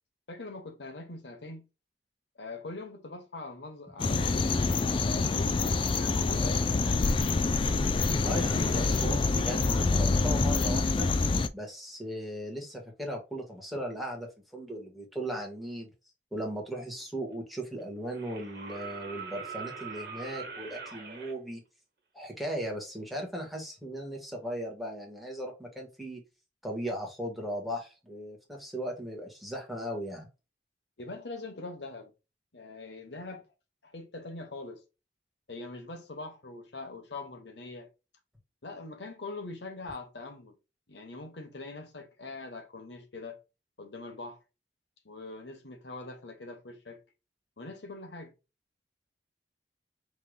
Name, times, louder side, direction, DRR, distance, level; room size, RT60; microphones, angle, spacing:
voice 1, 0.3-1.7 2.3-7.2 8.6-8.8 9.1-9.2 31.0-32.1 32.5-33.5 33.8-34.8 35.5-37.9 38.6-40.6 40.9-43.4 43.8-44.4 45.0-47.0 47.6-48.3, left 2 dB, 80° left, 1.1 m, -43 dB
sound 1, 4.0-11.5, left 3 dB, 30° left, 0.3 m, -26 dB
voice 2, 8.2-11.1 11.5-15.9 16.3-21.6 22.1-26.2 26.6-30.3, equal, ahead, 1.4 m, -37 dB
sound 2, 17.0-17.1 18.1-21.3 23.1-23.2, right 5 dB, 55° right, 1.3 m, -42 dB
5.6 x 3.3 x 2.3 m
head